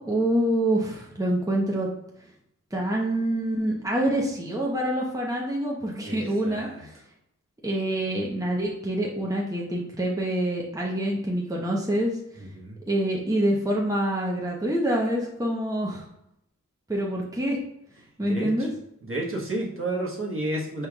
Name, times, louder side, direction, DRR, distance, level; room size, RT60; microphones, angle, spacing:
voice 1, 0.0-1.9 2.7-6.9 7.6-12.2 12.9-16.0 16.9-17.6 18.2-18.7, right 1 dB, 10° right, -2 dB, 0.9 m, -26 dB
voice 2, 6.4-6.8 12.6-12.8 18.2-18.7 19.0-20.9, right 1 dB, 40° right, -3 dB, 1.3 m, -31 dB
5.1 x 4.4 x 2.4 m, 0.79 s
wide cardioid pair, 55°, 31 cm